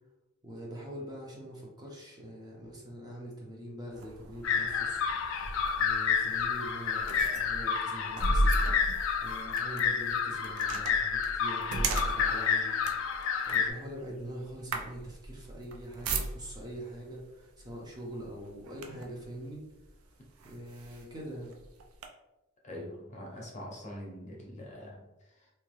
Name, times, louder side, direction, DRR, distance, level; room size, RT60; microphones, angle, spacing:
voice 1, 0.4-5.0 5.8-8.5 9.2-12.7 13.5-19.6 20.4-21.6, right 1 dB, 20° right, -2 dB, 0.6 m, -43 dB
sound 1, 3.9-16.8 17.6-17.8 18.2-19.2 19.9-20.0 20.4-22.1, right 2 dB, 85° right, 0.4 m, -36 dB
sound 2, 4.4-13.7, left 6 dB, 65° left, 0.3 m, -30 dB
voice 2, 22.6-25.5, left 1 dB, 35° left, -2 dB, 0.7 m, -44 dB
2.8 x 2.2 x 3.1 m, 1.0 s
head